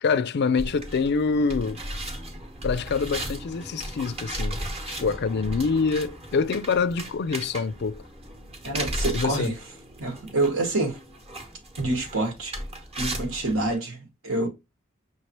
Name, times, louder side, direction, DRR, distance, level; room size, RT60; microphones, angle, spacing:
voice 1, 0.0-1.8 2.6-4.6 5.0-8.0 9.1-9.5, left 5 dB, 50° left, 0.4 m, -25 dB
sound 1, 0.6-13.8, right 1 dB, 30° right, 1.1 m, -36 dB
voice 2, 8.6-9.5 10.0-11.0 11.8-12.5 13.0-14.5, right 2 dB, 70° right, 1.3 m, -27 dB
5.7 x 3.2 x 2.9 m
head